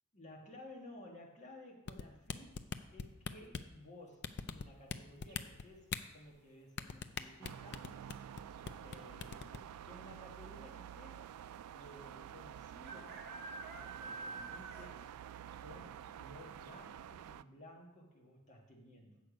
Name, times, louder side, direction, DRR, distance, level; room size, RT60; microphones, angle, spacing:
voice 1, 0.1-2.6 2.9-7.9 8.8-9.4 9.8-11.2 11.7-13.3 13.7-15.1 15.6-19.2, left 1 dB, 30° left, -1 dB, 1.6 m, -55 dB
sound 1, 1.9-3.7 4.2-5.0 5.2-6.0 6.8-8.4 8.7-9.0 9.2-9.6, left 6 dB, 50° left, 0.4 m, -40 dB
sound 2, 5.3-5.8 7.6-8.0 8.2-8.3 8.5-9.1 9.8-9.9 10.2-10.3 11.8-11.9 12.8-15.1 15.5-15.6 16.1-16.2 16.6-16.7, right 3 dB, 45° right, 1.0 m, -48 dB
sound 3, 7.4-17.4, right 9 dB, 85° right, 0.3 m, -50 dB
8.2 x 6.8 x 5.1 m, 1.0 s
head